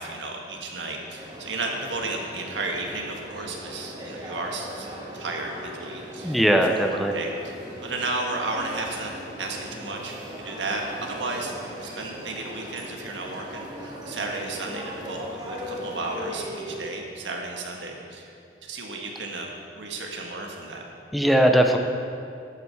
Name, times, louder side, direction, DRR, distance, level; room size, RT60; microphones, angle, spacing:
voice 1, 0.0-4.9 5.1-6.4 6.7-7.5 7.8-9.1 9.4-11.5 11.8-18.3 18.6-20.8, right 2 dB, 85° right, 1 dB, 1.6 m, -33 dB
sound 1, 1.2-16.8, equal, 25° right, 1.9 m, -39 dB
voice 2, 6.2-7.1 21.1-21.8, equal, ahead, 3 dB, 0.6 m, -19 dB
12.5 x 8.8 x 4.7 m, 2.5 s
head